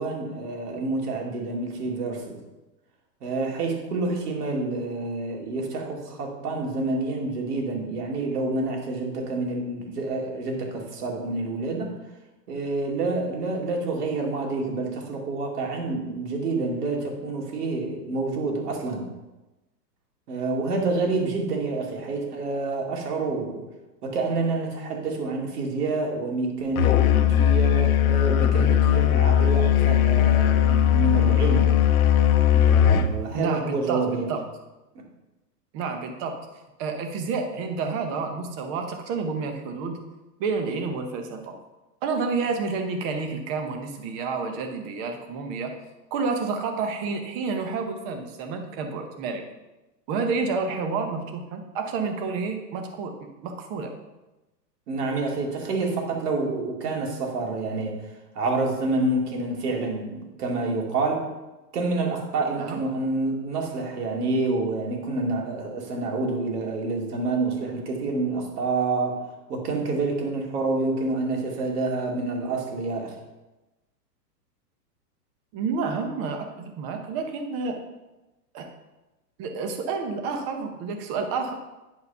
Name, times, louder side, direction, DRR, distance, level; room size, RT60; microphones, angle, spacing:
voice 1, 0.0-2.4 3.2-12.0 12.5-19.1 20.3-23.6 24.0-31.7 32.5-34.3 34.9-35.0 54.9-58.0 58.3-61.3 61.7-69.2 69.5-73.2, right 3 dB, 65° right, 1 dB, 2.5 m, -28 dB
Musical instrument, 26.8-33.1, left 10 dB, 60° left, 0.9 m, -19 dB
voice 2, 33.3-34.0 34.3-34.4 35.7-36.4 36.8-40.0 40.4-41.5 42.0-45.7 46.1-49.4 50.1-53.9 62.6-62.8 75.5-77.8 78.5-78.7 79.4-81.5, right 4 dB, 25° right, 5 dB, 0.8 m, -29 dB
9.6 x 4.8 x 5.5 m, 1.1 s
hypercardioid pair, 155°, 49 cm